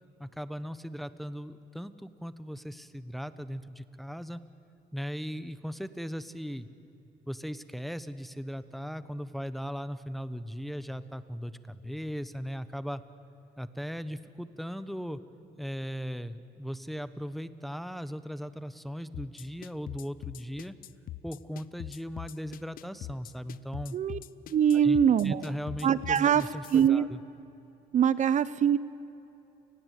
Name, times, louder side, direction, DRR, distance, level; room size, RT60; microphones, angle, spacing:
voice 1, 0.2-4.4 4.9-6.7 7.3-13.0 13.6-15.2 15.6-20.8 21.2-24.0 24.7-25.0 25.2-27.2, equal, ahead, 13 dB, 1.0 m, -38 dB
sound 1, 19.1-26.9, left 13 dB, 60° left, 0.7 m, -42 dB
voice 2, 24.5-25.5 25.8-26.4 26.7-27.0 27.9-28.8, right 8 dB, 45° right, 17 dB, 0.7 m, -23 dB
29.5 x 20.0 x 8.3 m, 2.9 s
cardioid pair, 110°, 17 cm